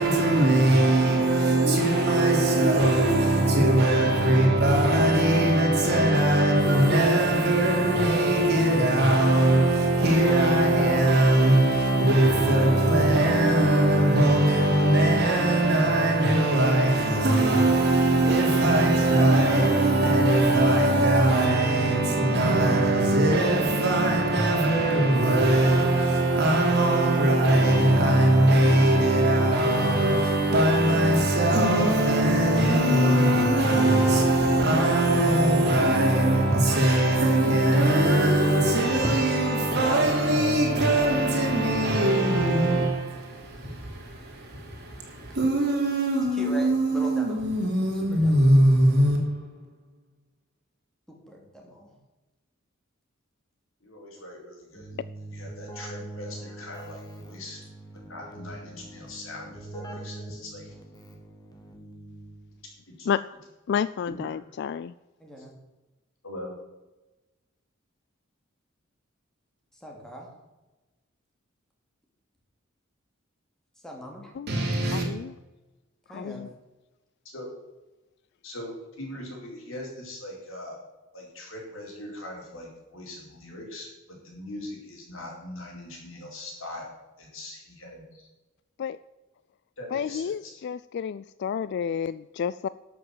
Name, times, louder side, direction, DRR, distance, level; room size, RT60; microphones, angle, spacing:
voice 1, 0.0-49.8 74.5-75.0, right 1 dB, 55° right, 3.4 m, -21 dB
sound 1, 34.4-34.8 35.1-35.5 36.5-37.0 37.8-38.1 39.0-39.6 40.6-40.8, right 1 dB, 15° right, 0.8 m, -35 dB
voice 2, 46.3-47.4 48.1-48.5 51.1-51.9 65.2-65.5 69.7-70.3 73.8-74.3 76.1-76.5, equal, 5° left, 2.8 m, -40 dB
voice 3, 53.8-57.6 57.9-60.7 63.0-63.1 64.1-64.3 66.2-66.5 77.2-77.5 78.4-80.8 81.1-88.3 89.8-90.5, left 1 dB, 75° left, 4.5 m, -41 dB
Keyboard (musical), 54.8-62.6, right 1 dB, 20° left, 2.0 m, -43 dB
voice 4, 63.7-64.9 74.4-74.5 74.9-75.3 76.1-76.5 88.8-89.0 89.9-92.7, left 7 dB, 55° left, 0.3 m, -30 dB
12.0 x 6.9 x 7.4 m
head